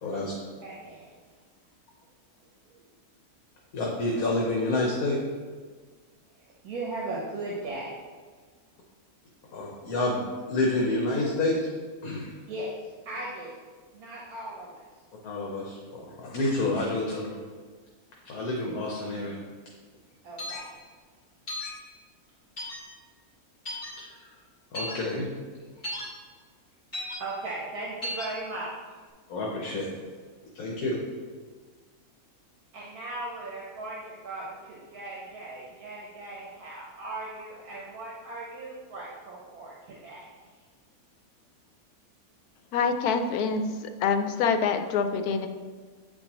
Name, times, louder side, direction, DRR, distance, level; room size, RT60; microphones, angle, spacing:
voice 1, 0.0-0.3 3.7-5.2 9.5-10.2 10.5-11.5 12.0-12.3 15.2-17.3 18.2-19.3 24.0-24.3 24.7-25.3 29.3-29.9 30.5-31.0, left 2 dB, 75° left, -2 dB, 1.4 m, -28 dB
voice 2, 0.6-1.4 2.7-2.9 6.3-8.0 12.5-13.6 13.9-15.0 20.2-20.7 27.2-29.0 32.7-40.5, right 2 dB, 80° right, -4 dB, 1.4 m, -38 dB
sound 1, 20.4-20.6 21.5-21.7 22.6-22.8 23.7-23.9 24.7-24.9 25.8-26.0 26.9-27.2 28.0-28.3, left 1 dB, 30° left, 2.1 m, -34 dB
voice 3, 42.7-45.5, left 5 dB, 90° left, 7 dB, 1.1 m, -26 dB
9.0 x 4.4 x 2.9 m, 1.5 s
omnidirectional pair, 1.6 m